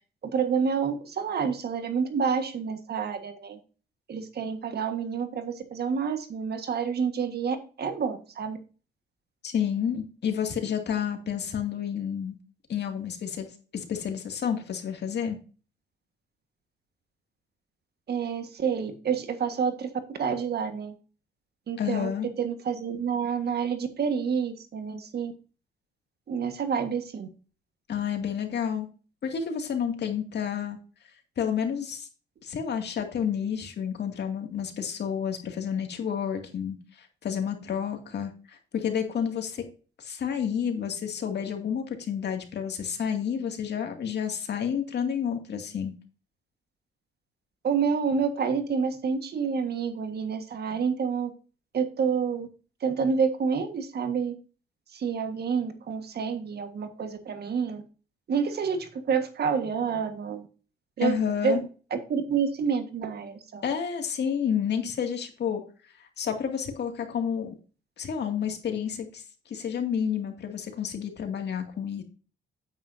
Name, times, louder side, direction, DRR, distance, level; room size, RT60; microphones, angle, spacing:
voice 1, 0.2-3.6 4.1-8.6 18.1-20.9 21.7-22.1 22.4-25.3 26.3-27.3 47.6-51.3 51.7-52.5 52.8-54.3 54.9-57.8 58.3-60.5 61.0-61.2 61.4-61.6 61.9-63.6, right 6 dB, 55° right, 8 dB, 1.6 m, -28 dB
voice 2, 9.4-12.4 12.7-13.5 13.7-15.4 21.8-22.3 27.9-28.9 29.2-30.8 31.4-32.1 32.4-39.6 40.0-45.9 61.0-61.6 63.6-65.6 66.2-67.5 68.0-69.2 69.5-72.0, left 8 dB, 60° left, 4 dB, 2.3 m, -30 dB
9.1 x 9.0 x 2.7 m, 0.36 s
cardioid pair, 90°, 20 cm